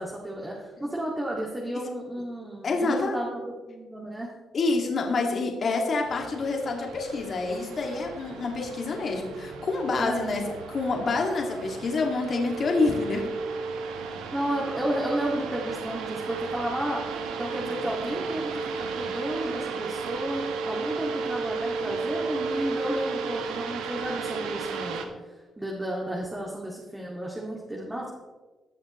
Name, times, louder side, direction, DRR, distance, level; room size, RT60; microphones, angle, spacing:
voice 1, 0.0-3.4 3.7-4.3 10.0-10.5 14.1-17.0 17.4-28.1, right 1 dB, 15° right, -3 dB, 2.2 m, -32 dB
voice 2, 2.6-3.2 4.5-13.2, left 3 dB, 50° left, 1 dB, 2.2 m, -27 dB
sound 1, 6.0-25.1, right 4 dB, 85° right, 1.1 m, -34 dB
19.0 x 6.4 x 3.1 m, 1.3 s
supercardioid pair, 65°, 0 cm